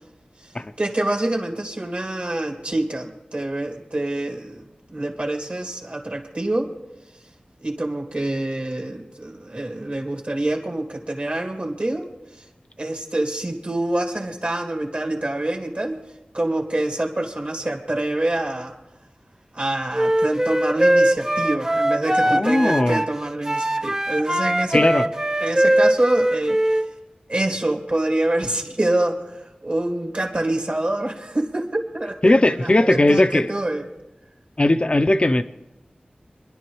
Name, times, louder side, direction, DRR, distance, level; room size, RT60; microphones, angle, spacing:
voice 1, 0.8-6.7 7.6-12.1 12.4-12.5 12.8-16.0 16.3-18.7 19.5-25.1 25.4-26.8 27.3-33.9, right 1 dB, 45° right, 2 dB, 2.1 m, -26 dB
Wind instrument woodwind instrument, 19.9-23.1 23.4-26.9, right 1 dB, 20° right, 0.6 m, -21 dB
voice 2, 22.3-23.0 24.7-25.0 32.2-33.5 34.6-35.4, left 1 dB, 35° left, 10 dB, 0.6 m, -18 dB
26.0 x 11.0 x 3.1 m, 0.98 s
wide cardioid pair, 70°, 3 cm